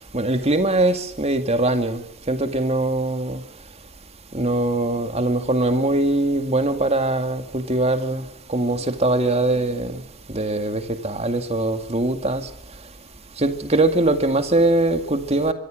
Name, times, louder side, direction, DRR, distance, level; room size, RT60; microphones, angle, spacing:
voice 1, 0.1-3.4 4.3-10.0 10.3-12.5 13.4-15.5, right 2 dB, 30° right, 2.2 m, -22 dB
24.5 x 24.0 x 6.4 m
head